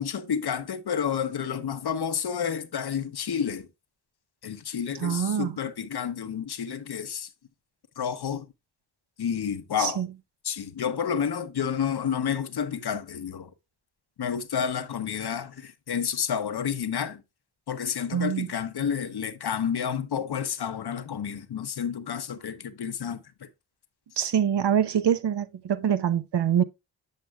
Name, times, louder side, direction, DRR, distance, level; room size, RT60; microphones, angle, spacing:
voice 1, 0.0-3.7 4.4-7.3 8.0-8.5 9.2-10.0 10.4-13.5 14.2-17.2 17.7-23.2, left 7 dB, 60° left, 0.8 m, -30 dB
voice 2, 5.0-5.5 9.8-10.1 18.1-18.5 24.2-26.6, right 9 dB, 65° right, 0.8 m, -25 dB
7.5 x 7.3 x 2.3 m
cardioid pair, 40°, 45 cm